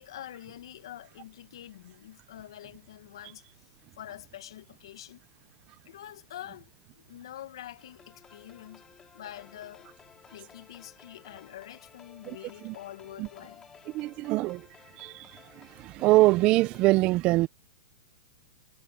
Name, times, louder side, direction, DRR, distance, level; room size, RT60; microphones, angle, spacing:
voice 1, 0.0-3.7 4.0-5.2 5.9-6.7 7.0-8.8 9.1-9.9 10.3-13.7, left 12 dB, 70° left, 1.9 m, -46 dB
sound 1, 7.8-16.9, left 7 dB, 20° left, 5.6 m, -55 dB
voice 2, 13.9-14.7 15.0-17.5, right 19 dB, 40° right, 0.8 m, -24 dB
hypercardioid pair, 120°, 3 cm